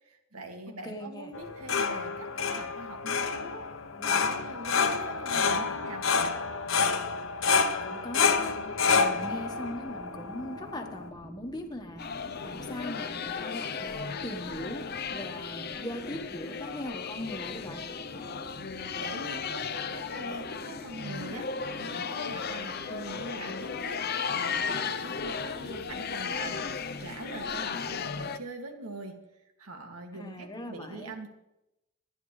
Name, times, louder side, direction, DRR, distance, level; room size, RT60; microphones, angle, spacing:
voice 1, 0.0-3.7 4.0-6.3 18.9-24.0 24.3-29.2 29.6-31.3, right 2 dB, 80° right, 4 dB, 2.2 m, -43 dB
voice 2, 0.7-1.4 7.8-8.5 8.8-17.9 30.1-31.1, left 1 dB, 20° left, 3 dB, 1.4 m, -40 dB
sound 1, 1.3-11.1, left 5 dB, 60° left, 1.0 m, -28 dB
sound 2, 8.3-28.1, equal, 45° right, 4.0 m, -50 dB
sound 3, 12.0-28.4, left 6 dB, 45° left, 0.6 m, -35 dB
27.0 x 10.0 x 3.3 m, 0.89 s
head